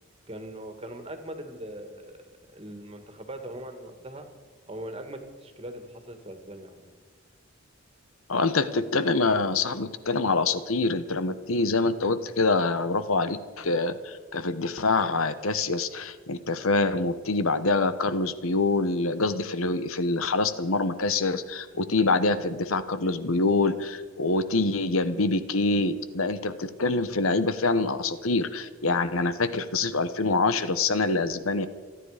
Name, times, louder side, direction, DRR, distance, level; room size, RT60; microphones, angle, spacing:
voice 1, 0.3-2.2 2.5-4.3 4.7-6.9, right 1 dB, 25° right, 6 dB, 1.9 m, -40 dB
voice 2, 8.3-31.7, left 3 dB, 90° left, 13 dB, 1.1 m, -25 dB
27.5 x 10.0 x 5.0 m, 1.5 s
head